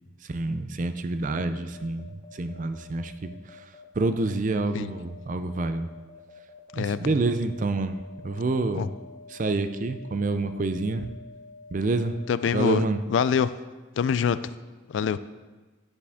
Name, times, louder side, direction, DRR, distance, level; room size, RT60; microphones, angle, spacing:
voice 1, 0.2-3.6 4.0-5.9 6.7-8.9 9.3-11.1 11.7-12.2 12.5-13.0, right 3 dB, 40° right, 10 dB, 0.4 m, -28 dB
sound 1, 1.2-12.9, left 4 dB, 40° left, 0.8 m, -48 dB
voice 2, 6.7-7.2 8.7-8.9 12.3-12.8 13.1-13.5 14.0-14.4 14.9-15.2, left 7 dB, 65° left, 15 dB, 0.3 m, -24 dB
9.7 x 6.9 x 3.5 m, 1.2 s
head